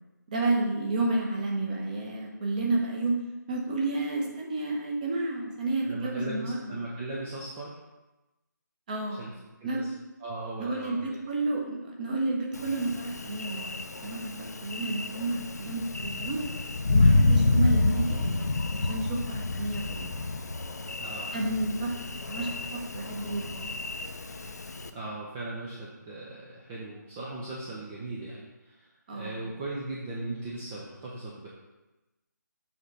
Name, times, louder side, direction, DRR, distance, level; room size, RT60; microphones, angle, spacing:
voice 1, 0.3-3.2 3.5-6.8 8.9-9.2 9.6-9.9 10.6-13.7 14.0-16.4 16.9-20.1 21.3-21.9 22.3-23.7 29.1-29.4, right 2 dB, 25° right, -1 dB, 1.0 m, -31 dB
voice 2, 5.8-7.7 9.2-9.3 9.6-9.9 10.2-11.2 17.3-17.6 21.0-21.4 24.9-31.5, right 2 dB, 10° right, -5 dB, 0.4 m, -38 dB
Thunder, 12.5-24.9, left 2 dB, 60° left, 0.5 m, -28 dB
7.1 x 4.2 x 5.1 m, 1.0 s
figure-of-eight pair, 150°, 10 cm